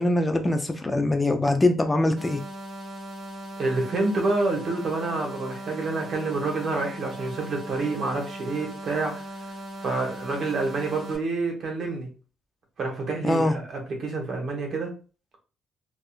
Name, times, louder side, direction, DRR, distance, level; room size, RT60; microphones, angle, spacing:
voice 1, 0.0-2.4 13.2-13.5, left 2 dB, 20° left, 6 dB, 0.4 m, -23 dB
sound 1, 2.2-11.2, equal, 30° right, 1.1 m, -39 dB
voice 2, 3.6-9.2 9.8-12.1 12.8-14.9, right 3 dB, 55° right, 1 dB, 1.1 m, -28 dB
2.6 x 2.4 x 2.4 m, 0.35 s
supercardioid pair, 75°, 0 cm